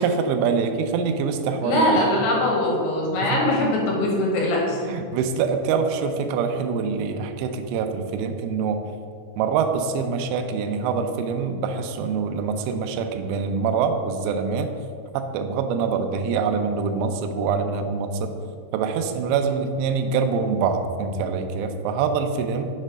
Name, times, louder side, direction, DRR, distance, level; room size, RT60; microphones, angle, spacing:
voice 1, 0.0-1.8 2.2-2.3 3.2-3.4 4.9-8.8 9.4-14.7 15.1-18.3 18.7-22.7, right 5 dB, 85° right, 6 dB, 3.0 m, -25 dB
voice 2, 1.6-4.8, left 1 dB, 75° left, -2 dB, 3.3 m, -22 dB
7.3 x 3.3 x 6.2 m, 2.3 s
omnidirectional pair, 5.5 m